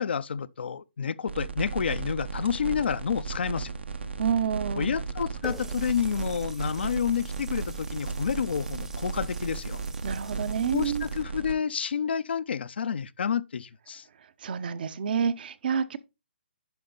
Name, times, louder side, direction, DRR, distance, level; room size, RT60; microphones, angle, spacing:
voice 1, 0.0-3.7 4.7-9.8 10.7-14.1, left 7 dB, 70° left, 0.6 m, -29 dB
sound 1, 1.3-11.5, right 4 dB, 80° right, 1.3 m, -35 dB
voice 2, 4.2-4.9 10.0-11.0 14.4-16.0, right 7 dB, 55° right, 0.8 m, -28 dB
Water tap faucet, 5.4-11.2, right 3 dB, 5° right, 0.8 m, -48 dB
10.5 x 5.1 x 3.9 m
hypercardioid pair, 140°, 6 cm